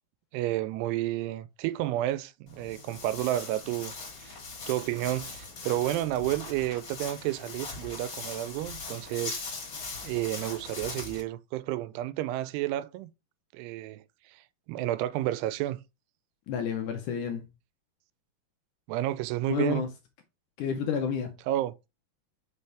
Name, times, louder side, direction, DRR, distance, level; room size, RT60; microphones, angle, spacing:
voice 1, 0.3-3.9 4.2-4.4 4.7-9.4 10.0-13.1 13.5-14.4 14.7-15.8 18.9-19.8 21.5-21.7, right 14 dB, 90° right, 2.6 m, -31 dB
Walk footsteps, 2.5-11.2, left 4 dB, 40° left, 1.9 m, -40 dB
voice 2, 16.5-17.4 19.4-19.9 20.6-21.3, left 7 dB, 75° left, 1.8 m, -30 dB
5.8 x 5.5 x 3.3 m
omnidirectional pair, 4.6 m